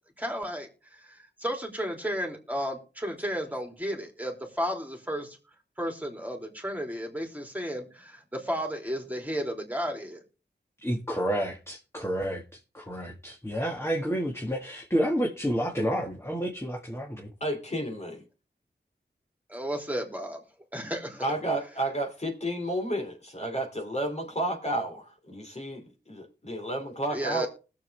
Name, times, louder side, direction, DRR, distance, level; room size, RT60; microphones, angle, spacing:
voice 1, 0.2-0.7 1.0-5.4 5.8-10.2 19.5-20.4 20.7-21.2 27.1-27.5, equal, 10° right, 2 dB, 3.1 m, -33 dB
voice 2, 10.8-12.4 12.7-17.3, equal, 15° left, 0 dB, 1.8 m, -30 dB
voice 3, 17.4-18.2 21.2-27.5, right 1 dB, 40° left, 2 dB, 2.9 m, -31 dB
20.0 x 7.3 x 3.4 m, 0.34 s
wide cardioid pair, 60°, 18 cm